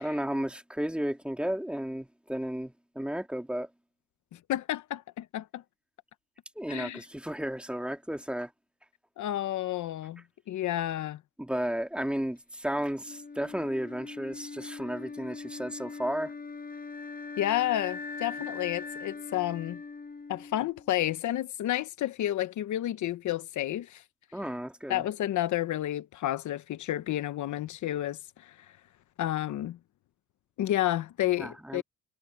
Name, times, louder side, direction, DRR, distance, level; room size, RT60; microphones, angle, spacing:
voice 1, 0.0-3.7 6.6-8.5 11.4-16.3 24.3-25.0 31.4-31.8, equal, 5° right, 3.0 m, -33 dB
voice 2, 4.3-5.6 6.7-7.1 9.2-11.2 17.4-19.8 20.3-24.0 24.9-28.6 29.2-29.8 30.6-31.8, left 13 dB, 75° left, 1.0 m, -31 dB
Wind instrument woodwind instrument, 13.0-21.1, left 4 dB, 30° left, 7.7 m, -41 dB
cardioid pair, 90°, 30 cm